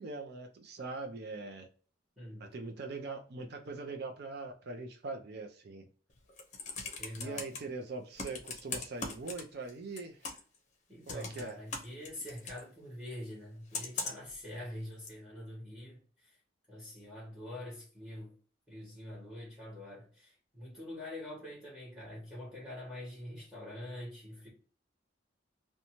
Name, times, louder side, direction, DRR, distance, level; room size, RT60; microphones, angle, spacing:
voice 1, 0.0-1.7 2.4-5.9 7.2-10.4 11.1-11.5, right 3 dB, 55° right, 0.5 m, -42 dB
voice 2, 2.2-2.5 7.0-7.6 10.9-16.4 16.7-18.3 18.7-24.5, left 1 dB, 5° right, 1.1 m, -45 dB
Computer keyboard, 6.2-7.6 8.2-9.7 10.0-10.6 11.1-12.6 13.7-14.3 15.1-15.2, left 4 dB, 40° left, 0.6 m, -39 dB
2.7 x 2.2 x 2.9 m
head